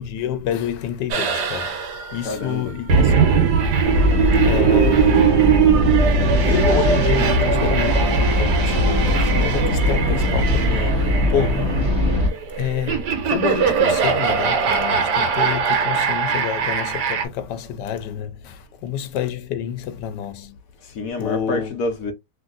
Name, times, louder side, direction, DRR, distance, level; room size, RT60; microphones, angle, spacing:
voice 1, 0.0-3.6 4.3-5.8 6.4-11.8 12.6-20.6 21.2-21.7, left 8 dB, 90° left, 1.2 m, -28 dB
sound 1, 1.1-17.3, right 7 dB, 80° right, 1.4 m, -21 dB
voice 2, 2.2-2.7 20.8-22.1, left 2 dB, 65° left, 1.0 m, -27 dB
sound 2, 3.8-12.3, left 1 dB, 15° left, 1.2 m, -20 dB
sound 3, 4.5-11.0, right 5 dB, 60° right, 1.2 m, -29 dB
3.1 x 2.6 x 2.4 m
omnidirectional pair, 1.8 m